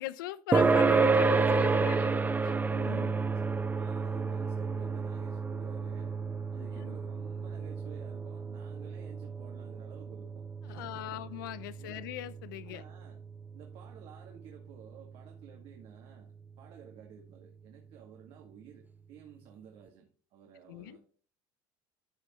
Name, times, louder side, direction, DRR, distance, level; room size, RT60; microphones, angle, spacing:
voice 1, 0.0-2.1 2.4-3.1 6.6-7.0 10.7-12.8 20.7-21.0, left 14 dB, 90° left, 0.6 m, -40 dB
sound 1, 0.5-15.4, right 4 dB, 15° right, 0.6 m, -31 dB
voice 2, 1.5-2.0 2.6-3.1 3.4-6.2 6.5-11.3 11.8-12.1 12.6-13.2 13.5-21.0, right 8 dB, 60° right, 2.1 m, -53 dB
12.5 x 5.3 x 3.1 m
supercardioid pair, 95°, 11 cm